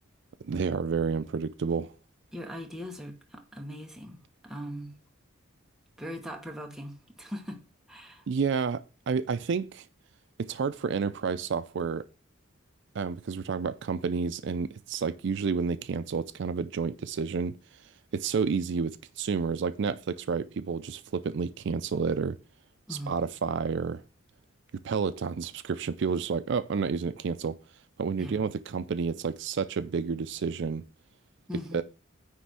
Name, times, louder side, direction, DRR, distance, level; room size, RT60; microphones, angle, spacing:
voice 1, 0.4-1.9 8.3-9.9 10.5-12.0 12.9-17.6 18.1-22.4 22.9-24.0 24.8-27.6 28.0-30.8 31.7-31.8, right 5 dB, 60° right, 0.4 m, -30 dB
voice 2, 2.3-4.9 6.0-7.6 7.9-8.2 22.9-23.2 28.2-28.4 31.5-31.8, equal, ahead, 1.2 m, -40 dB
9.6 x 3.4 x 6.2 m
head